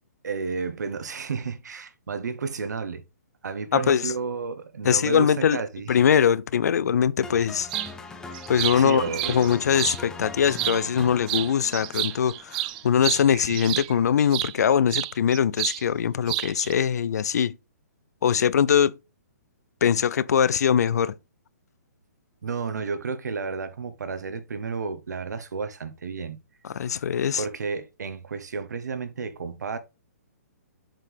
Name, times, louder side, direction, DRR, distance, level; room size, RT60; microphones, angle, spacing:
voice 1, 0.2-3.0 3.4-6.0 8.7-9.5 22.4-26.4 27.4-29.8, right 5 dB, 80° right, 1.2 m, -32 dB
voice 2, 3.7-4.1 4.8-5.6 5.9-7.7 8.5-9.0 9.3-17.6 18.2-19.0 19.8-21.2 26.6-27.4, left 8 dB, 70° left, 0.5 m, -22 dB
sound 1, 7.2-13.3, left 3 dB, 5° left, 0.7 m, -41 dB
sound 2, 7.7-7.9 8.3-10.0 10.5-11.0 11.3-14.5 14.9-15.8 16.1-16.7, right 16 dB, 30° right, 0.3 m, -30 dB
7.6 x 4.6 x 3.4 m
hypercardioid pair, 155°, 9 cm